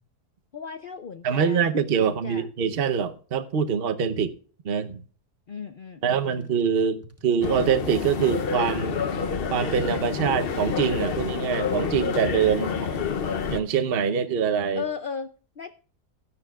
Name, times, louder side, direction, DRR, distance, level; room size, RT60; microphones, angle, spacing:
voice 1, 0.5-1.7 2.0-2.5 5.5-6.5 12.6-13.4 14.7-15.7, left 6 dB, 90° left, 0.4 m, -36 dB
voice 2, 1.2-4.3 4.6-5.0 6.0-9.0 9.5-12.7 13.5-14.8, right 7 dB, 45° right, 0.9 m, -24 dB
sound 1, 6.1-6.6 7.0-8.0 8.4-9.1 9.6-9.8 10.8-12.6 13.0-13.1, equal, 10° right, 1.0 m, -48 dB
sound 2, 7.4-13.6, left 6 dB, 50° left, 0.7 m, -28 dB
16.5 x 11.5 x 2.4 m
omnidirectional pair, 1.7 m